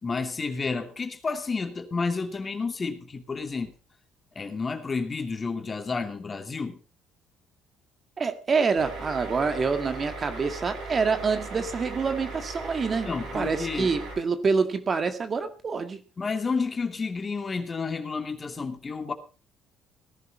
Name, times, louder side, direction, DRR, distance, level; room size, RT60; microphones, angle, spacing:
voice 1, 0.0-3.7 4.4-6.8 13.1-13.9 16.2-19.1, left 4 dB, 30° left, 2.6 m, -30 dB
voice 2, 8.2-16.0, right 5 dB, 40° right, 1.8 m, -26 dB
sound 1, 8.8-14.2, right 2 dB, 70° right, 6.2 m, -38 dB
18.0 x 11.0 x 4.2 m
supercardioid pair, 70°, 0 cm